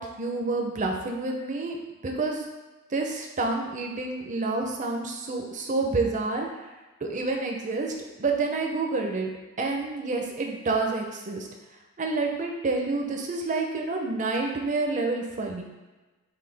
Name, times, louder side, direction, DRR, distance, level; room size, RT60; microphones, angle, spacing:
voice 1, 0.0-1.8 2.0-2.4 2.9-6.5 7.0-9.3 9.6-11.5 12.0-15.6, right 3 dB, 35° right, 2 dB, 0.5 m, -28 dB
5.6 x 2.2 x 3.3 m, 1.2 s
head